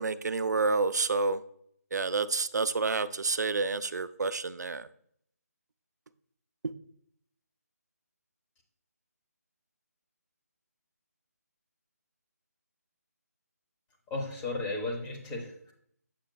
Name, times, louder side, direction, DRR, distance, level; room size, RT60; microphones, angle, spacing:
voice 1, 0.0-1.4 1.9-4.9, right 4 dB, 85° right, 13 dB, 0.4 m, -29 dB
voice 2, 14.1-15.7, left 2 dB, 10° left, 0 dB, 0.8 m, -35 dB
7.5 x 5.9 x 2.3 m, 0.67 s
figure-of-eight pair, 165°, 9 cm